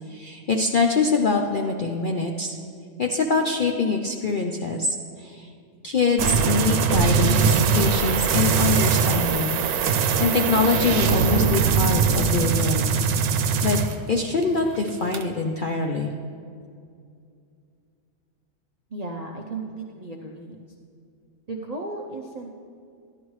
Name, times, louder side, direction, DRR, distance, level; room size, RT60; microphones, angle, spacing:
voice 1, 0.1-2.6 3.0-5.5 5.8-9.6 10.0-12.9 13.6-13.8 14.1-16.1, left 3 dB, 60° left, 2 dB, 0.5 m, -24 dB
sound 1, 6.2-14.4 14.8-15.2, right 6 dB, 90° right, 1.1 m, -21 dB
voice 2, 18.9-20.6 21.5-22.5, right 2 dB, 50° right, 0 dB, 0.4 m, -35 dB
13.5 x 11.0 x 3.2 m, 2.4 s
omnidirectional pair, 1.5 m